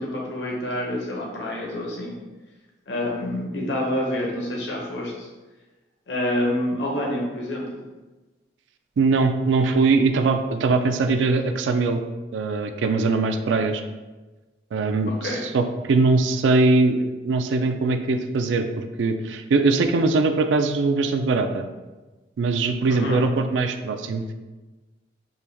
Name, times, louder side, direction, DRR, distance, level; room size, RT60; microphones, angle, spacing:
voice 1, 0.0-2.1 2.9-5.3 6.1-7.6 15.1-15.4 22.9-23.3, left 1 dB, 75° left, -2 dB, 0.9 m, -27 dB
voice 2, 9.0-12.0 12.3-13.8 14.7-21.6 22.4-24.3, right 3 dB, 90° right, 7 dB, 0.3 m, -21 dB
4.4 x 2.2 x 3.4 m, 1.2 s
head